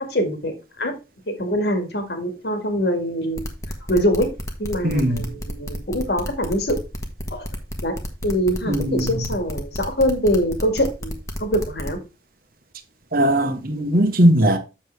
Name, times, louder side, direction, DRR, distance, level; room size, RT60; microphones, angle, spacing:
voice 1, 0.1-0.9 1.3-3.5 3.9-4.3 4.6-6.8 7.3-7.5 7.8-8.0 8.2-12.0, equal, 65° left, 2.0 m, -23 dB
sound 1, 3.3-12.0, equal, 15° left, 1.2 m, -30 dB
voice 2, 4.8-5.2 8.7-9.2 13.1-14.6, right 1 dB, 55° right, 1.2 m, -19 dB
7.6 x 6.5 x 3.4 m
head